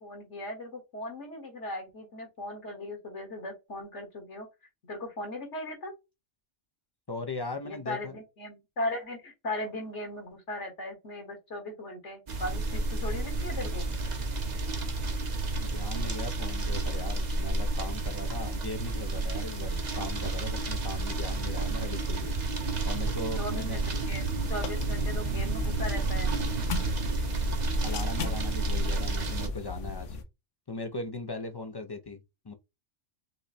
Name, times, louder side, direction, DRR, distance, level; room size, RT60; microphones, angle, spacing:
voice 1, 0.0-4.5 4.9-5.9 7.6-13.9 23.4-24.2 24.5-26.3, left 1 dB, 70° left, 1.9 m, -38 dB
voice 2, 7.1-8.1 15.6-22.3 22.9-23.8 27.8-30.2 30.7-32.5, left 3 dB, 35° left, 0.4 m, -39 dB
sound 1, 12.3-29.5, right 2 dB, 40° right, 0.9 m, -31 dB
sound 2, 24.3-30.2, left 5 dB, 90° left, 1.1 m, -38 dB
5.5 x 2.2 x 4.1 m
omnidirectional pair, 1.2 m